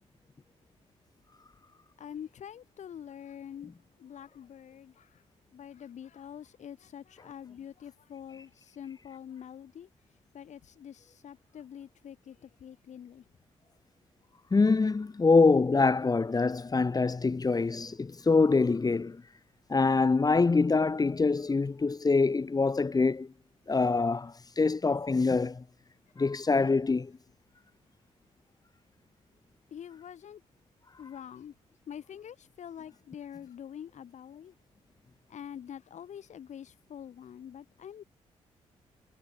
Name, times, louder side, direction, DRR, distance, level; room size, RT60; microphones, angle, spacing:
voice 1, 2.0-3.7 4.0-5.2 5.5-9.9 10.3-13.2 26.9-27.0 29.7-30.4 31.0-31.5 31.9-34.5 35.3-38.0, left 9 dB, 70° left, 4.7 m, -45 dB
voice 2, 14.5-19.2 19.7-23.3 23.7-25.6 26.2-27.1, left 4 dB, 30° left, 1.5 m, -25 dB
cardioid pair, 65°, 13 cm